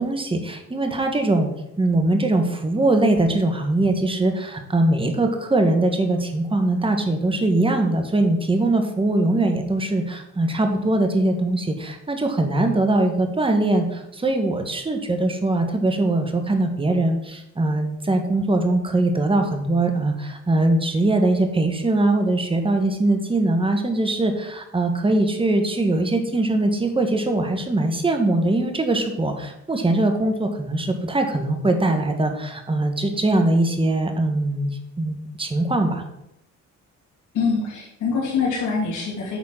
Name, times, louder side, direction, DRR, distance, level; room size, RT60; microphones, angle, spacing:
voice 1, 0.0-1.5 1.8-34.7 35.0-36.0, right 2 dB, 15° right, 5 dB, 1.4 m, -21 dB
voice 2, 37.3-39.4, left 5 dB, 75° left, -7 dB, 2.8 m, -24 dB
8.4 x 4.3 x 5.8 m, 0.82 s
cardioid pair, 90°, 30 cm